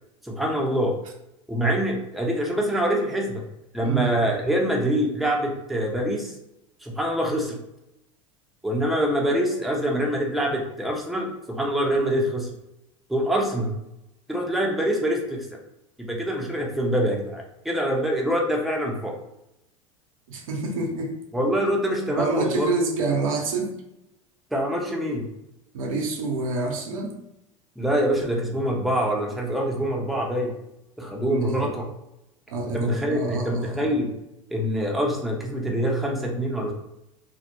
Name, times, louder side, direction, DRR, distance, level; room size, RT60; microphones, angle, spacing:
voice 1, 0.2-0.9 1.5-3.4 3.7-6.3 6.8-7.6 8.6-12.5 13.1-13.7 14.3-15.5 16.1-19.2 21.3-22.7 24.5-25.3 27.8-30.5 31.0-31.9 32.7-34.1 34.5-36.7, equal, ahead, -1 dB, 0.6 m, -25 dB
voice 2, 20.3-21.2 21.5-21.7 22.0-23.7 25.7-27.1 31.3-31.7 32.5-33.9, right 3 dB, 75° right, 1 dB, 0.7 m, -27 dB
2.2 x 2.1 x 2.9 m, 0.85 s
hypercardioid pair, 85°, 18 cm